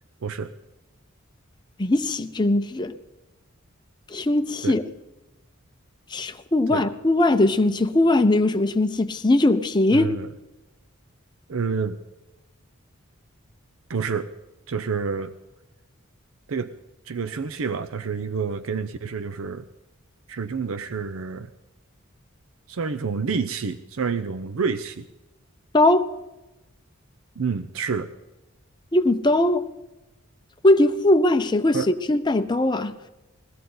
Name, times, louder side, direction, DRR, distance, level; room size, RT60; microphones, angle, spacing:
voice 1, 0.2-0.5 4.6-4.8 6.7-6.9 9.9-10.3 11.5-12.0 13.9-14.3 14.7-15.3 16.5-16.7 17.0-19.6 20.3-21.5 22.7-25.1 27.4-28.1 31.7-31.9, right 5 dB, 80° right, 0.6 m, -28 dB
voice 2, 1.8-2.9 4.1-4.8 6.1-10.1 25.7-26.1 28.9-29.6 30.6-33.0, left 2 dB, 20° left, 0.7 m, -20 dB
20.5 x 16.0 x 3.9 m
head